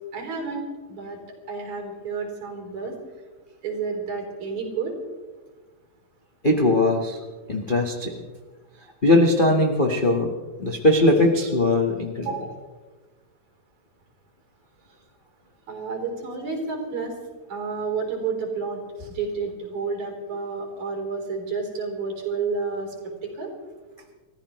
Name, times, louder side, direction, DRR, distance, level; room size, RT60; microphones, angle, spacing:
voice 1, 0.1-1.2 1.5-3.0 3.6-4.9 12.2-12.6 15.7-17.1 17.5-18.8 19.1-22.9 23.4-23.5, right 4 dB, 70° right, 1 dB, 5.0 m, -30 dB
voice 2, 6.4-7.2 7.5-8.1 9.0-10.3 10.6-12.3, left 1 dB, 55° left, 0 dB, 0.5 m, -20 dB
30.0 x 14.5 x 3.1 m, 1.3 s
omnidirectional pair, 3.4 m